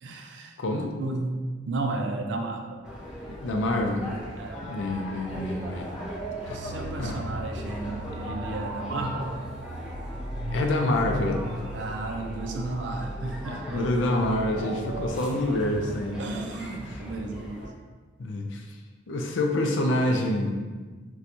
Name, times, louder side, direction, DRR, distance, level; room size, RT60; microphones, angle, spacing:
voice 1, 0.0-0.6 1.0-1.4 1.6-2.8 4.4-4.7 6.5-9.3 10.9-14.8 15.6-17.7 19.7-21.0, right 2 dB, 70° right, 3 dB, 0.4 m, -34 dB
voice 2, 0.6-0.9 3.3-4.1 4.7-5.9 6.5-6.6 7.0-7.2 10.5-11.4 13.7-16.2 18.2-18.6 19.1-20.6, left 1 dB, 80° left, 3 dB, 0.4 m, -26 dB
sound 1, 2.8-17.7, equal, 5° right, 0.6 m, -40 dB
sound 2, 4.8-15.1, right 1 dB, 40° right, 0.7 m, -38 dB
4.2 x 2.3 x 2.6 m, 1.4 s
head